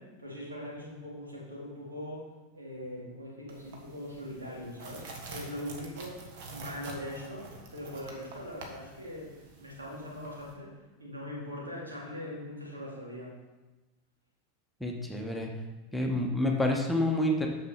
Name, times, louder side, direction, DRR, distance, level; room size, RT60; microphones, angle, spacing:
voice 1, 0.0-2.3 2.5-13.3, left 1 dB, 80° right, -4 dB, 3.1 m, -41 dB
sound 1, 3.5-10.5, right 3 dB, 55° right, 1.5 m, -47 dB
voice 2, 14.8-15.5 15.9-17.5, left 1 dB, 5° left, 0 dB, 1.3 m, -28 dB
6.7 x 6.6 x 5.8 m, 1.2 s
figure-of-eight pair, 80°, 0 cm